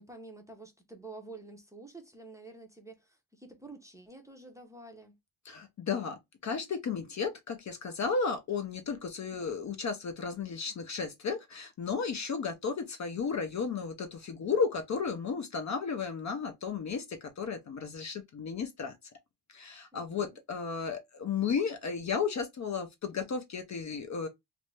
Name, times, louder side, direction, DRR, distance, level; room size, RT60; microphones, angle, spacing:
voice 1, 0.0-5.1 19.9-20.4, right 3 dB, 5° right, 0.6 m, -49 dB
voice 2, 5.5-18.9 19.5-24.3, left 5 dB, 40° left, 0.5 m, -34 dB
2.5 x 2.1 x 3.0 m
cardioid pair, 95°, 44 cm